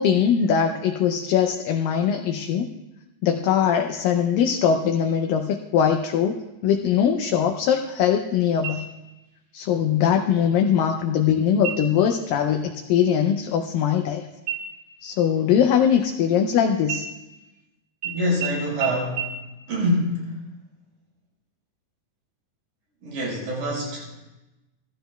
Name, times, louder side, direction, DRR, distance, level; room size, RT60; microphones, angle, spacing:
voice 1, 0.0-2.7 3.2-8.9 9.5-14.3 15.0-17.0, left 8 dB, 80° left, 3 dB, 2.2 m, -21 dB
sound 1, 8.6-9.3 9.7-9.8 10.3-10.9 11.6-12.1 12.5-12.7 13.0-14.1 14.5-16.5 16.8-17.6 18.0-18.1 18.4-18.5 18.8-18.9 19.2-19.3, right 9 dB, 60° right, 3.1 m, -33 dB
voice 2, 18.1-19.3 19.7-20.4 23.0-24.3, equal, 80° right, -5 dB, 6.5 m, -25 dB
16.5 x 14.5 x 2.3 m, 1.0 s
omnidirectional pair, 4.3 m